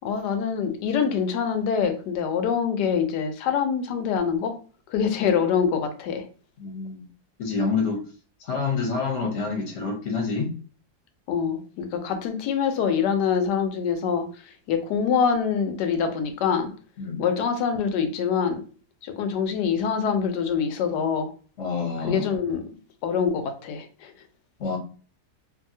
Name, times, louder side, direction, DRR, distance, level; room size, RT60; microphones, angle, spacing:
voice 1, 0.0-4.6 4.9-6.3 11.3-16.7 17.2-18.6 19.0-21.3 22.0-24.1, left 7 dB, 85° left, 1.2 m, -25 dB
voice 2, 6.6-7.0 7.4-8.0 8.4-10.5 17.0-17.2 21.6-22.2 24.6-24.8, left 4 dB, 50° left, 1.0 m, -27 dB
2.7 x 2.7 x 2.6 m
omnidirectional pair, 1.8 m